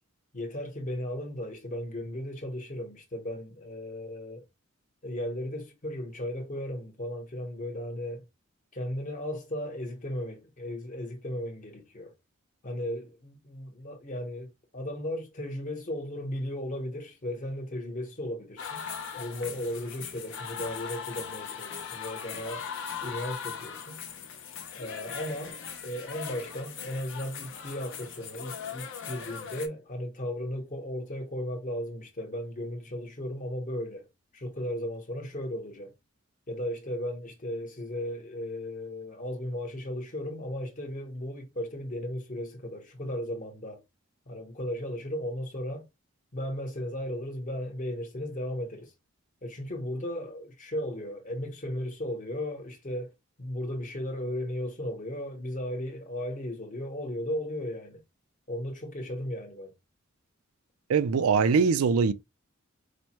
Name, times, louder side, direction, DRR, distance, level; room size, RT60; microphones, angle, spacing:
voice 1, 0.3-4.4 5.0-8.3 8.7-12.1 12.6-18.8 19.2-22.7 23.0-24.0 24.7-34.1 34.3-35.9 36.5-43.8 44.3-45.8 46.3-48.9 49.4-53.1 53.4-58.0 58.5-59.7, left 1 dB, 40° left, 1.0 m, -36 dB
sound 1, 18.6-29.7, left 7 dB, 65° left, 0.8 m, -39 dB
voice 2, 60.9-62.1, right 5 dB, 90° right, 0.4 m, -22 dB
4.8 x 2.1 x 2.9 m
head